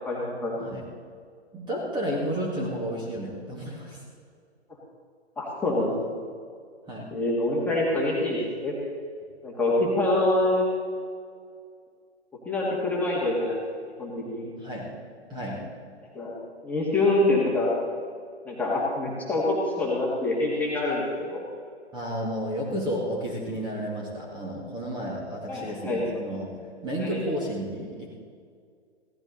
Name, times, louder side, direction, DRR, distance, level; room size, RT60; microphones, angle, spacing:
voice 1, 0.0-0.6 5.4-5.9 7.1-8.7 9.4-10.6 12.5-13.6 14.0-14.5 16.1-16.3 16.6-17.7 18.5-21.4 25.5-26.1 27.0-27.2, left 2 dB, 5° left, -6 dB, 2.3 m, -25 dB
voice 2, 1.5-4.0 6.9-7.1 14.6-14.9 15.3-15.6 21.9-26.5 26.8-28.1, equal, 15° right, -3 dB, 2.2 m, -32 dB
16.5 x 13.0 x 4.1 m, 2.1 s
figure-of-eight pair, 125°, 34 cm